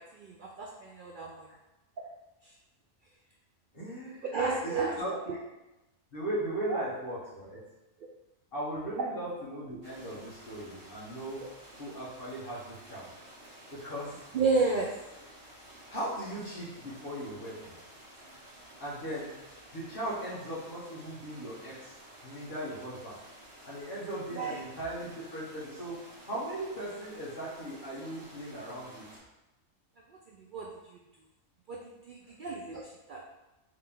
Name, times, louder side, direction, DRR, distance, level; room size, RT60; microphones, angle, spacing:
voice 1, 0.0-1.5 2.0-2.1 4.3-4.9 5.3-5.4 6.7-6.8 14.3-14.9 24.3-24.6 30.5-30.7 31.7-33.2, right 4 dB, 85° right, -1 dB, 0.4 m, -31 dB
voice 2, 3.7-4.3 4.6-5.1 6.1-7.6 8.5-11.4 11.8-13.1 13.7-14.3 15.9-17.7 18.8-19.3 19.7-21.9 22.2-23.1 23.6-26.0 26.2-29.0, right 1 dB, 40° left, -7 dB, 1.6 m, -38 dB
sound 1, 9.8-29.2, right 1 dB, 40° right, 1.5 m, -52 dB
4.8 x 3.0 x 3.7 m, 0.99 s
omnidirectional pair, 1.4 m